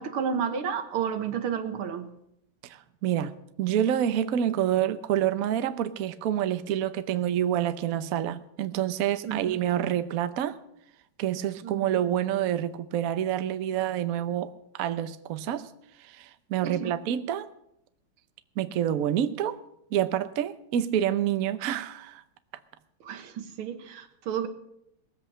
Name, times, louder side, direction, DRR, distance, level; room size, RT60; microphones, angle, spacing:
voice 1, 0.0-2.1 9.3-9.6 11.6-11.9 16.6-17.0 23.0-24.5, right 7 dB, 90° right, 2.1 m, -31 dB
voice 2, 2.6-3.3 3.6-10.6 11.2-15.7 16.0-17.5 18.6-19.6 19.9-22.2, right 10 dB, 60° right, 0.9 m, -27 dB
19.5 x 7.9 x 7.3 m
omnidirectional pair, 2.3 m